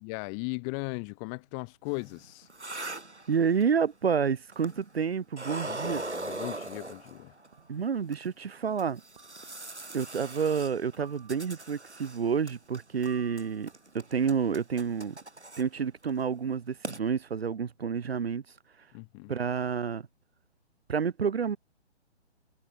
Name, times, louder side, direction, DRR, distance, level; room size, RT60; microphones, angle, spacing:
voice 1, 0.0-2.5 5.6-7.3 18.9-19.3, left 40 dB or more, 5° left, 0.5 m, -37 dB
sound 1, 1.9-3.8 4.5-5.0 5.3-7.5 8.1-8.2 8.8-12.2 12.5-13.1 13.4-15.6 16.0-16.2 16.5-16.6 16.8-17.0, right 2 dB, 80° right, 3.5 m, -40 dB
voice 2, 3.3-6.0 7.7-9.0 9.9-15.2 15.6-18.4 19.3-20.1 20.9-21.6, right 6 dB, 65° right, 0.8 m, -29 dB
sound 2, 7.5-7.9 9.2-9.7 11.0-11.8 13.1-14.0, right 8 dB, 45° right, 4.3 m, -54 dB
figure-of-eight pair, 135°, 33 cm